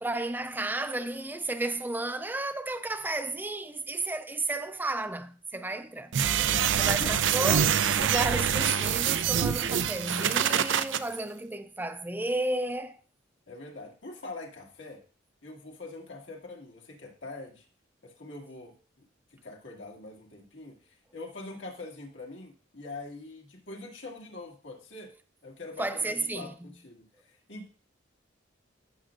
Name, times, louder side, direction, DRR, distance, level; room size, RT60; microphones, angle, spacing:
voice 1, 0.0-6.1 6.8-13.0 25.8-26.7, right 2 dB, 10° right, 0.4 m, -33 dB
sound 1, 6.1-11.0, right 8 dB, 75° right, 0.5 m, -25 dB
voice 2, 6.3-7.3 13.5-15.0 15.4-17.6 18.0-18.7 19.4-25.1 25.4-27.7, left 2 dB, 75° left, 1.9 m, -43 dB
15.0 x 6.3 x 2.5 m
head